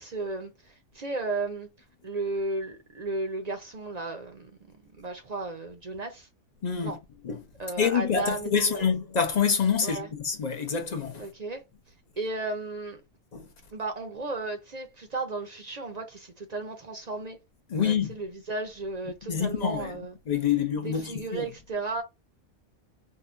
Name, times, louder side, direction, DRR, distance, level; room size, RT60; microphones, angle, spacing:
voice 1, 0.0-1.7 2.0-4.5 5.0-6.3 6.8-7.0 7.6-8.9 9.8-10.1 11.2-11.6 12.2-13.0 13.7-17.4 17.8-20.1 20.8-22.0, right 3 dB, 45° right, 0.6 m, -34 dB
voice 2, 6.6-7.0 7.2-7.4 7.8-11.3 13.3-13.5 17.7-18.2 19.2-19.9 20.3-21.5, left 7 dB, 45° left, 0.6 m, -27 dB
3.7 x 2.2 x 2.5 m
omnidirectional pair, 1.3 m